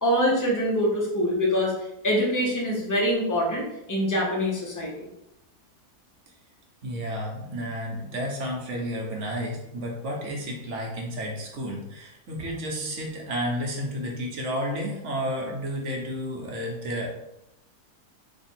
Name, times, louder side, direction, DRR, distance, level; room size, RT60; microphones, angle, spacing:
voice 1, 0.0-1.7 2.0-5.1, equal, 20° left, -3 dB, 0.5 m, -24 dB
voice 2, 6.8-17.1, equal, 60° right, 0 dB, 1.0 m, -31 dB
3.3 x 2.3 x 4.3 m, 0.87 s
omnidirectional pair, 1.6 m